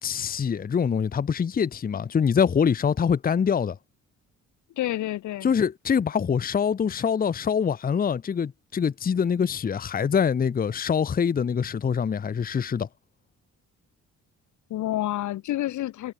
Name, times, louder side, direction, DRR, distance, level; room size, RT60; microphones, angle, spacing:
voice 1, 0.0-3.8 5.4-12.9, left 7 dB, 30° left, 0.7 m, -24 dB
voice 2, 4.8-5.5 14.7-16.1, left 14 dB, 75° left, 1.2 m, -29 dB
cardioid pair, 90°, 30 cm